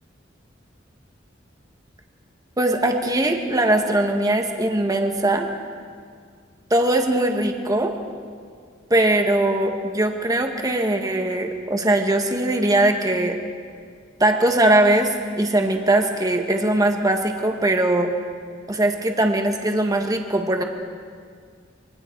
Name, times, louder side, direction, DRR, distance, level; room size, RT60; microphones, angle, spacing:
voice 1, 2.6-5.5 6.7-7.9 8.9-13.4 14.2-18.1 18.7-20.6, right 1 dB, 20° right, 3 dB, 1.7 m, -20 dB
26.0 x 23.0 x 4.7 m, 2.1 s
head